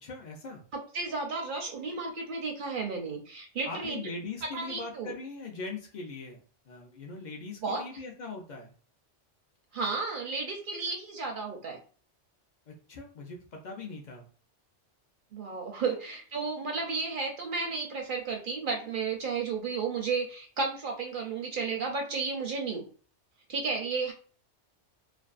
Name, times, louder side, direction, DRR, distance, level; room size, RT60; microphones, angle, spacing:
voice 1, 0.0-0.6 3.6-8.7 12.7-14.3 15.9-16.0, left 3 dB, 55° left, 1 dB, 0.5 m, -41 dB
voice 2, 0.7-4.0 4.5-5.1 7.6-7.8 9.7-11.8 15.3-22.9 23.5-24.1, right 4 dB, 60° right, 2 dB, 0.6 m, -33 dB
2.4 x 2.2 x 2.4 m, 0.42 s
omnidirectional pair, 1.2 m